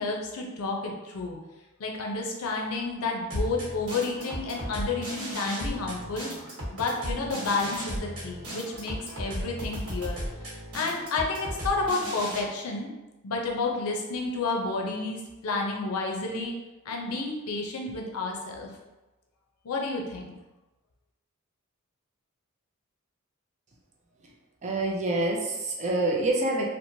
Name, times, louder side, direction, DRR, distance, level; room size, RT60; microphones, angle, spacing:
voice 1, 0.0-1.4 1.8-6.3 6.7-10.2 10.7-12.9 13.2-16.5 16.8-18.7 19.6-20.3, left 3 dB, 85° left, 1 dB, 0.5 m, -30 dB
sound 1, 3.3-12.4, equal, 85° right, 1.2 m, -36 dB
voice 2, 24.6-26.7, right 2 dB, 35° right, -1 dB, 0.4 m, -26 dB
2.9 x 2.1 x 2.6 m, 1.1 s
head